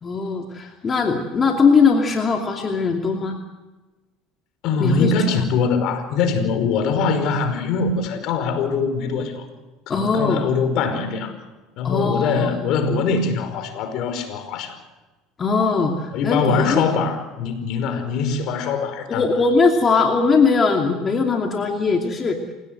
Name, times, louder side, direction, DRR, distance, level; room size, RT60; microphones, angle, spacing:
voice 1, 0.0-3.4 4.8-5.1 9.9-10.4 11.8-12.6 15.4-16.9 19.1-22.4, left 4 dB, 35° left, 2 dB, 2.6 m, -20 dB
voice 2, 4.6-9.5 9.9-11.3 11.8-14.8 16.1-19.2, left 5 dB, 60° left, 8 dB, 5.1 m, -22 dB
28.0 x 17.5 x 7.9 m, 1.2 s
hypercardioid pair, 80°, 0 cm